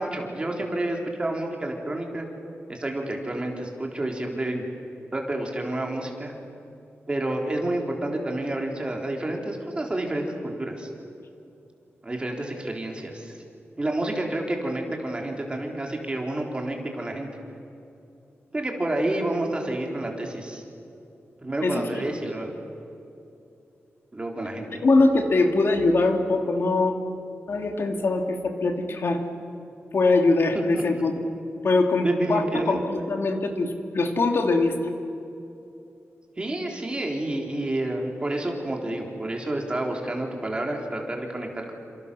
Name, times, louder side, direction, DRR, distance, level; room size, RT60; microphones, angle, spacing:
voice 1, 0.0-2.3 2.7-4.6 5.1-6.3 7.1-10.9 12.0-13.3 13.8-17.3 18.5-20.6 21.4-22.5 24.1-24.8 30.7-31.0 32.0-32.8 36.4-41.7, right 1 dB, 20° right, 1 dB, 3.7 m, -29 dB
voice 2, 21.6-22.0 24.8-26.9 27.5-29.2 29.9-31.1 31.6-34.8, left 3 dB, 60° left, 4 dB, 2.6 m, -22 dB
29.5 x 27.0 x 6.9 m, 2.7 s
wide cardioid pair, 160°, 5 cm